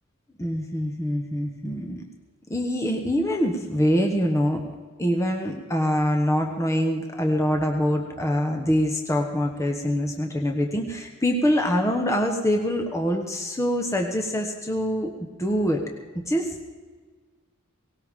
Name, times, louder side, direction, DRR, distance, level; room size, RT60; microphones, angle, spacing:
voice 1, 0.4-2.0 2.5-4.6 5.0-15.1 15.4-15.8 16.3-16.7, equal, 15° left, 2 dB, 1.1 m, -24 dB
18.5 x 18.5 x 3.7 m, 1.4 s
head